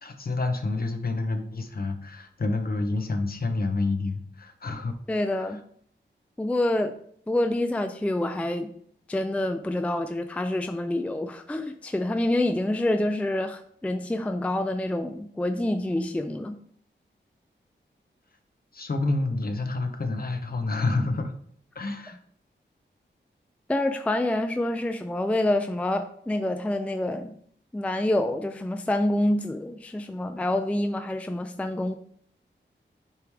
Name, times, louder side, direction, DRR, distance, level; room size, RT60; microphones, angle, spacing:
voice 1, 0.0-5.0 5.5-5.6 18.7-21.3 21.7-22.2, left 2 dB, 50° left, 6 dB, 0.8 m, -28 dB
voice 2, 5.1-5.6 6.4-6.9 7.3-8.7 9.1-16.5 23.7-27.3 27.7-31.9, left 1 dB, 5° left, 8 dB, 0.4 m, -27 dB
8.4 x 3.2 x 3.5 m, 0.63 s
wide cardioid pair, 100°, 19 cm